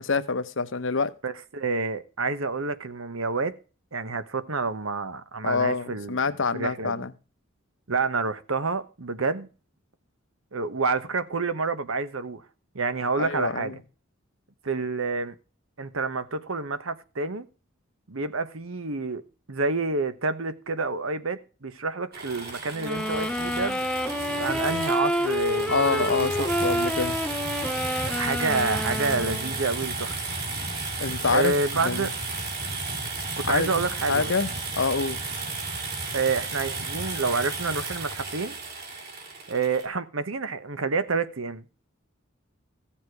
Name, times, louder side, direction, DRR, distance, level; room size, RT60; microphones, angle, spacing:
voice 1, 0.0-1.1 5.4-7.1 13.1-13.8 25.7-27.2 31.0-32.1 33.5-33.7 34.1-35.2, left 4 dB, 60° left, 0.9 m, -26 dB
voice 2, 1.2-3.5 3.9-7.0 7.9-9.5 10.5-12.4 12.7-13.8 14.6-15.3 15.8-17.5 18.1-19.2 19.5-26.5 28.0-30.2 31.3-32.1 33.4-34.3 36.1-38.6 39.5-41.6, right 4 dB, 75° right, 1.1 m, -28 dB
sound 1, 22.1-39.9, right 3 dB, 50° right, 3.4 m, -33 dB
sound 2, 22.8-29.6, equal, 5° left, 0.6 m, -28 dB
15.5 x 7.4 x 4.7 m
head